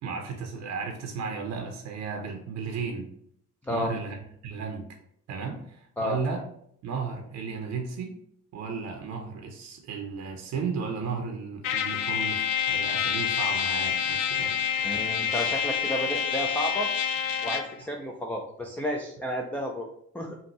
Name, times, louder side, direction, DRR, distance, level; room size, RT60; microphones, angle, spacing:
voice 1, 0.0-3.1 3.7-4.2 4.4-4.9 5.3-6.4 6.8-8.2 8.5-15.1, right 5 dB, 40° right, 3 dB, 0.7 m, -34 dB
voice 2, 3.6-3.9 6.0-6.2 14.8-16.9 17.4-19.9 20.1-20.4, equal, 5° left, 0 dB, 0.4 m, -31 dB
Trumpet, 11.6-17.8, left 8 dB, 65° left, 0.5 m, -27 dB
5.4 x 2.5 x 3.0 m, 0.69 s
figure-of-eight pair, 50°, 42 cm